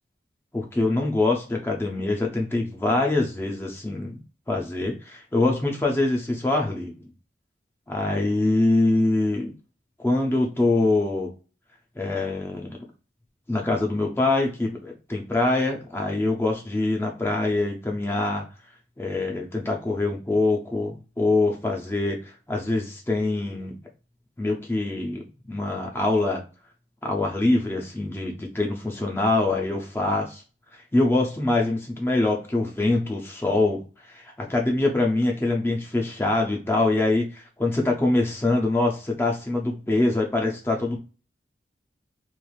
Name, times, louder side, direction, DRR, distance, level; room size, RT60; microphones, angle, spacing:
voice 1, 0.5-4.2 4.5-6.9 7.9-9.5 10.0-11.3 12.0-12.8 13.5-18.4 19.0-23.8 24.4-26.4 27.0-30.4 30.7-33.8 34.1-41.0, left 2 dB, 15° left, 0 dB, 0.4 m, -24 dB
3.0 x 2.4 x 2.3 m, 0.35 s
head